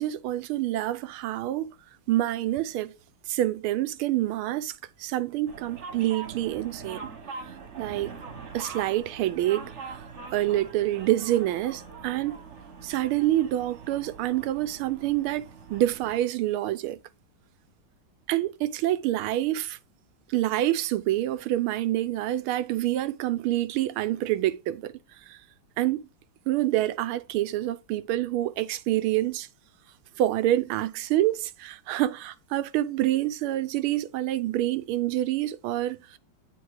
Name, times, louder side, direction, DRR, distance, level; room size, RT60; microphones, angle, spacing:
voice 1, 0.0-1.7 2.1-2.9 3.3-7.1 7.8-8.1 8.5-9.7 10.3-12.4 12.8-17.0 18.3-19.8 20.3-24.9 25.3-25.4 25.8-26.0 26.5-29.5 30.2-36.2, right 14 dB, 80° right, 1.5 m, -27 dB
sound 1, 5.5-16.2, right 5 dB, 40° right, 1.3 m, -43 dB
9.5 x 3.6 x 4.8 m
omnidirectional pair, 2.3 m